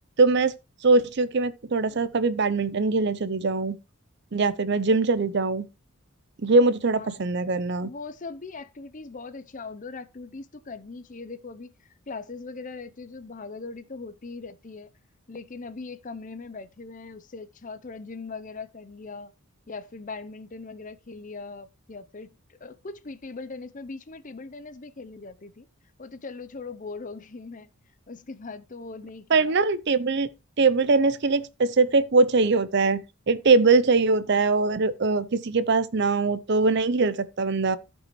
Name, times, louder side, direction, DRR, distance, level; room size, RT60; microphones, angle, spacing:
voice 1, 0.2-0.5 0.8-3.8 4.3-5.7 6.4-7.9 29.3-30.3 30.6-37.8, right 3 dB, 50° right, 0.6 m, -22 dB
voice 2, 7.8-14.9 15.3-19.3 19.7-25.7 26.0-27.7 28.1-29.5, left 4 dB, 35° left, 0.6 m, -40 dB
15.0 x 5.4 x 3.1 m
head